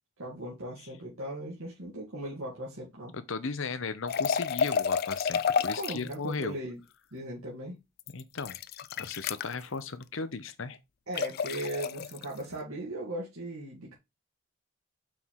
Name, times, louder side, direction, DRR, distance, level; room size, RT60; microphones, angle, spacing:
voice 1, 0.2-3.1 5.8-6.8 7.1-7.8 11.1-13.9, right 1 dB, 80° right, 2.2 m, -38 dB
voice 2, 3.1-6.6 8.1-8.6 9.0-10.8, left 4 dB, 65° left, 0.8 m, -36 dB
sound 1, 4.1-6.1 8.0-9.5 11.1-12.2, left 6 dB, 45° left, 0.3 m, -30 dB
6.1 x 4.6 x 3.7 m
head